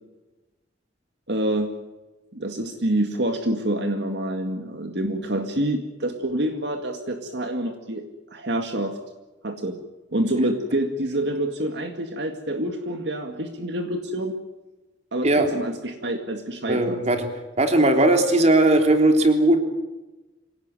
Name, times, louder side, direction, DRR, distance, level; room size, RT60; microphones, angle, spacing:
voice 1, 1.3-1.7 2.3-8.0 8.3-9.0 9.4-9.8 10.1-14.3 15.1-17.0, right 1 dB, 65° right, 5 dB, 2.1 m, -27 dB
voice 2, 16.7-17.3 17.6-19.6, right 2 dB, 35° right, 5 dB, 3.3 m, -18 dB
26.0 x 18.0 x 9.2 m, 1.1 s
head